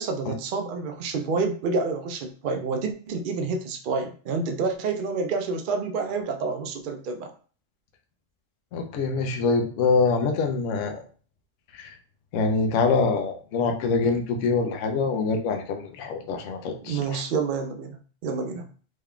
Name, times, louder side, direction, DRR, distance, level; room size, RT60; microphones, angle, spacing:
voice 1, 0.0-7.3 16.9-18.7, right 4 dB, 65° right, 5 dB, 0.5 m, -28 dB
voice 2, 8.7-11.0 11.7-11.9 12.3-17.2, left 4 dB, 70° left, 4 dB, 0.9 m, -25 dB
3.6 x 3.1 x 2.3 m, 0.41 s
omnidirectional pair, 1.4 m